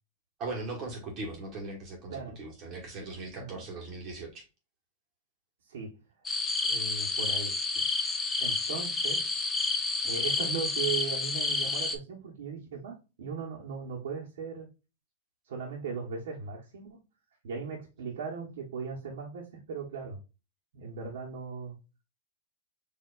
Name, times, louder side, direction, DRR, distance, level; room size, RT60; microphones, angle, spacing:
voice 1, 0.4-4.4, right 2 dB, 40° right, 1.4 m, -39 dB
voice 2, 2.1-2.4 3.3-3.6 5.6-5.9 6.6-7.8 8.4-9.5 10.0-14.7 15.5-17.0 17.4-20.2 20.7-21.8, right 5 dB, 80° right, 1.3 m, -38 dB
sound 1, 6.3-12.0, left 3 dB, 15° left, 0.6 m, -30 dB
4.6 x 2.8 x 2.4 m
hypercardioid pair, 125°, 0 cm